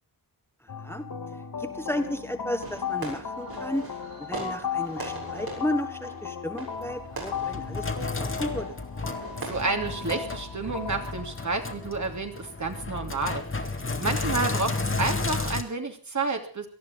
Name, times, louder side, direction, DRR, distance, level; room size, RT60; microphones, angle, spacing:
voice 1, 0.6-1.1 1.6-3.9 4.2-7.9 8.2-8.8, equal, 5° left, 7 dB, 1.8 m, -33 dB
sound 1, 0.7-13.7, left 7 dB, 85° left, 2.6 m, -36 dB
Fireworks, 2.6-10.7, right 3 dB, 80° right, 7.4 m, -42 dB
Sink (filling or washing), 6.8-15.6, left 3 dB, 35° left, 1.9 m, -32 dB
voice 2, 9.5-13.7 14.0-16.7, right 3 dB, 55° right, 4 dB, 2.9 m, -30 dB
18.5 x 13.5 x 5.4 m, 0.37 s
wide cardioid pair, 80°, 36 cm